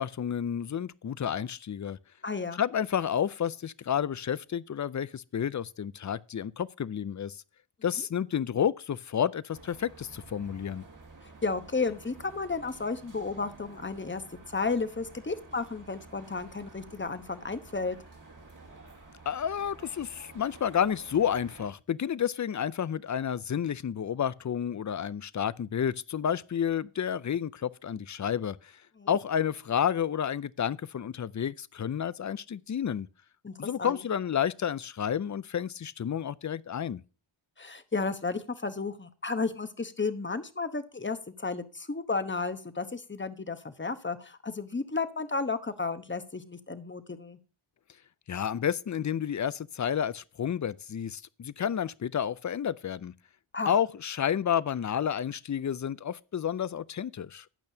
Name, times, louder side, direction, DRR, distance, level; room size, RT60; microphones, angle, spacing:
voice 1, 0.0-2.0 2.6-7.4 7.8-10.8 19.3-28.7 29.1-33.1 33.6-37.0 48.3-53.1 53.7-57.5, left 8 dB, 40° left, 0.4 m, -30 dB
voice 2, 2.2-2.6 11.2-14.2 14.5-18.0 29.0-29.1 33.4-34.0 37.6-47.4 53.5-53.7, left 4 dB, 25° left, 0.9 m, -33 dB
sound 1, 9.5-21.7, right 3 dB, 40° right, 1.7 m, -51 dB
12.0 x 8.7 x 2.8 m
wide cardioid pair, 85°, 50 cm